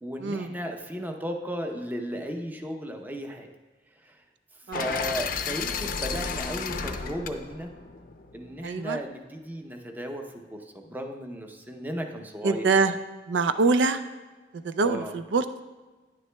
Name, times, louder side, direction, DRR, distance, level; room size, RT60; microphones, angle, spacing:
voice 1, 0.0-3.5 4.0-4.2 4.7-7.7 8.3-12.9 14.8-15.1, equal, 10° right, 4 dB, 0.6 m, -35 dB
sound 1, 4.7-8.8, left 5 dB, 50° left, 0.5 m, -33 dB
voice 2, 8.6-9.0 12.4-12.9 13.3-14.0 14.6-15.6, right 4 dB, 90° right, 10 dB, 0.4 m, -24 dB
10.0 x 9.6 x 2.2 m, 1.3 s
head